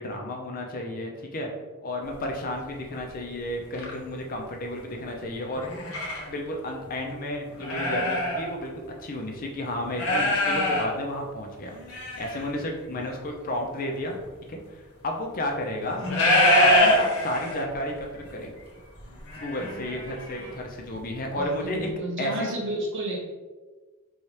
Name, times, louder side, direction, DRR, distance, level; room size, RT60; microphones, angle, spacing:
voice 1, 0.0-1.5 1.8-5.7 6.3-8.7 9.0-14.2 14.5-16.0 16.4-18.5 19.4-21.9 22.2-22.5, left 1 dB, 40° left, 1 dB, 0.5 m, -32 dB
sound 1, 2.1-2.3 2.9-3.0 3.6-3.9 5.5-6.3 6.9-7.0 7.5-8.5 8.8-8.9 9.9-10.9 11.7-12.5 14.1-14.2 15.8-17.8 18.1-18.3 18.6-20.5 20.9-21.0, left 1 dB, 65° left, 1.0 m, -24 dB
voice 2, 16.0-16.4 21.3-23.2, equal, 55° right, -1 dB, 0.9 m, -32 dB
4.1 x 2.4 x 3.2 m, 1.3 s
head